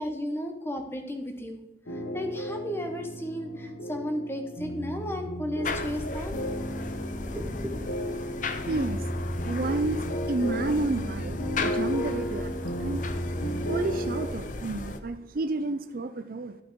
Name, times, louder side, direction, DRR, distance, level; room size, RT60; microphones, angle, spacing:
voice 1, 0.0-1.6 2.1-6.4 6.9-7.7, equal, 15° left, 5 dB, 1.1 m, -34 dB
sound 1, 1.9-14.3, equal, 75° left, 1.3 m, -33 dB
sound 2, 5.6-15.0, left 3 dB, 45° left, 0.7 m, -36 dB
voice 2, 8.7-9.1 9.4-13.0 13.6-16.6, right 2 dB, 50° right, 11 dB, 0.5 m, -31 dB
11.5 x 6.2 x 4.7 m, 0.94 s
head